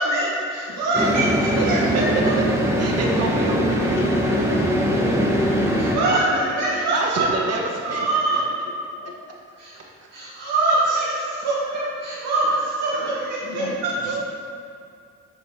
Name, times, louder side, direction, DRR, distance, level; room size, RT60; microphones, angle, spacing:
voice 1, 0.0-2.3 5.8-6.3 6.6-7.2 7.8-8.4 9.6-9.7 10.1-13.9, right 2 dB, 80° right, -9 dB, 1.4 m, -24 dB
sound 1, 0.9-6.0, equal, 10° right, 0.9 m, -21 dB
voice 2, 1.6-2.0 2.8-4.8 6.7-8.2 9.7-9.9 13.1-13.2 13.5-13.8 14.0-14.2, right 3 dB, 55° right, -1 dB, 1.1 m, -29 dB
voice 3, 4.4-5.5 5.9-6.3 6.7-6.8 8.3-8.4 9.0-9.1 13.4-13.8 14.1-14.2, left 3 dB, 85° left, 0 dB, 0.8 m, -35 dB
6.9 x 4.2 x 3.5 m, 2.3 s
cardioid pair, 90°, 30 cm